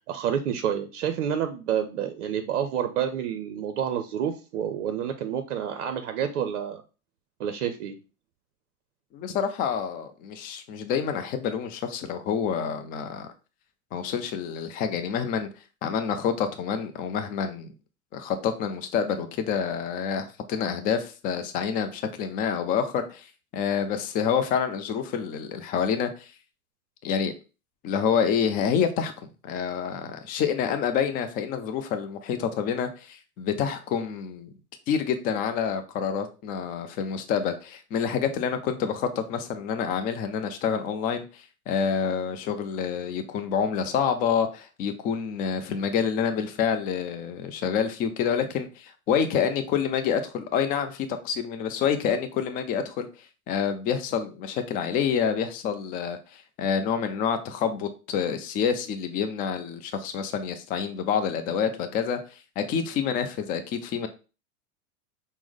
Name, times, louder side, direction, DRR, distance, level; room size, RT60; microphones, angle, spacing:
voice 1, 0.1-6.8 7.4-7.9, right 9 dB, 55° right, 0.6 m, -29 dB
voice 2, 9.1-13.3 13.9-15.5 15.8-17.7 18.1-23.3 23.5-26.3 27.0-27.3 27.8-29.1 29.4-34.5 34.9-41.2 41.7-53.1 53.5-64.1, left 7 dB, 20° left, 0.4 m, -27 dB
5.9 x 2.1 x 3.5 m
figure-of-eight pair, 85°, 44 cm